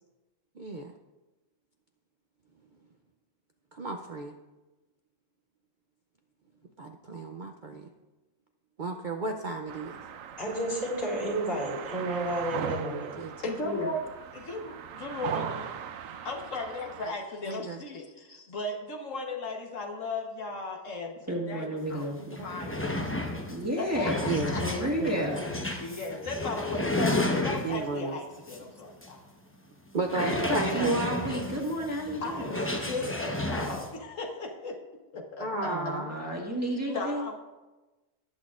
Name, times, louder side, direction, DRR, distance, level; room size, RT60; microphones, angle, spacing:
voice 1, 0.6-0.9 3.7-4.4 6.8-7.9 8.8-9.9 13.2-13.3 17.5-17.8 18.3-18.5 22.3-22.4 24.2-24.5 25.0-25.4 27.6-28.2 29.9-31.0 35.4-36.1, right 3 dB, 50° right, 3 dB, 0.6 m, -33 dB
sound 1, 9.7-17.1, right 8 dB, 85° right, 1.0 m, -39 dB
voice 2, 10.4-13.1, right 1 dB, 45° left, -5 dB, 3.8 m, -31 dB
voice 3, 13.4-14.0 14.3-15.7 16.0-22.2 22.4-22.9 23.8-24.6 25.8-29.2 32.2-34.8 35.1-35.8 36.9-37.4, left 3 dB, 75° left, 1 dB, 1.5 m, -36 dB
voice 4, 21.3-22.3 23.5-25.5 30.1-32.6 35.5-37.3, equal, 10° right, -3 dB, 1.6 m, -32 dB
sound 2, 21.9-22.0 22.3-28.0 28.5-28.6 29.0-29.1 30.0-33.9, left 2 dB, 10° left, 0.8 m, -32 dB
18.5 x 8.3 x 2.5 m, 1.1 s
omnidirectional pair, 1.3 m